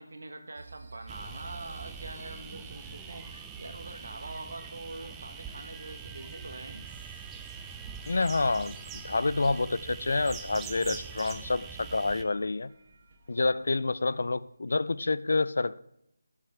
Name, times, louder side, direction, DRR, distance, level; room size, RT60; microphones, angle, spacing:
voice 1, 0.0-6.8, right 2 dB, 70° right, 1.4 m, -44 dB
sound 1, 0.5-14.5, right 4 dB, 50° right, 1.4 m, -57 dB
sound 2, 1.1-12.2, right 6 dB, 10° right, 0.5 m, -43 dB
voice 2, 8.1-12.7 13.3-15.8, left 3 dB, 70° left, 0.4 m, -28 dB
14.0 x 7.1 x 3.4 m
figure-of-eight pair, 160°, 0 cm